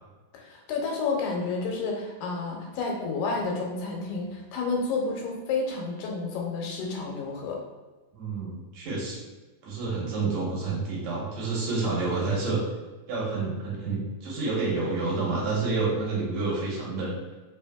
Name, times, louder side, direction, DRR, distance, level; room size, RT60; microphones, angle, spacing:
voice 1, 0.3-7.6, left 4 dB, 90° left, 0 dB, 2.5 m, -30 dB
voice 2, 8.1-9.2 9.6-12.6 13.1-17.2, right 3 dB, 65° right, -5 dB, 1.9 m, -29 dB
4.9 x 3.4 x 2.2 m, 1.2 s
omnidirectional pair, 3.9 m